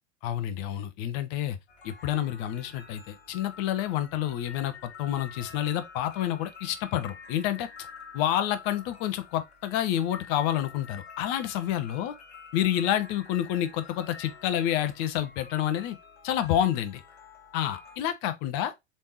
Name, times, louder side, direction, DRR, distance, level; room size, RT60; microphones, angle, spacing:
voice 1, 0.2-1.6 1.8-7.7 8.1-12.1 12.5-16.0 16.2-17.0 17.5-18.7, left 11 dB, 40° left, 0.7 m, -29 dB
sound 1, 1.7-18.0, left 5 dB, 70° left, 1.0 m, -49 dB
4.1 x 3.5 x 2.8 m
figure-of-eight pair, 85°, 34 cm